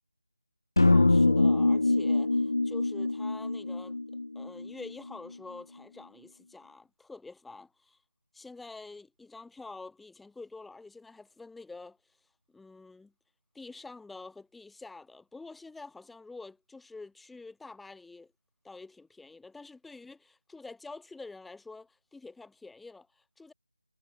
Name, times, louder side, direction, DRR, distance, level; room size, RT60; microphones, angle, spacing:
sound 1, 0.8-4.9, left 2 dB, 60° left, 1.2 m, -24 dB
voice 1, 0.8-4.0 4.3-8.0 8.3-12.0 12.5-13.1 13.5-18.3 18.6-23.5, left 3 dB, ahead, 4.2 m, -47 dB
figure-of-eight pair, 160°, 2 cm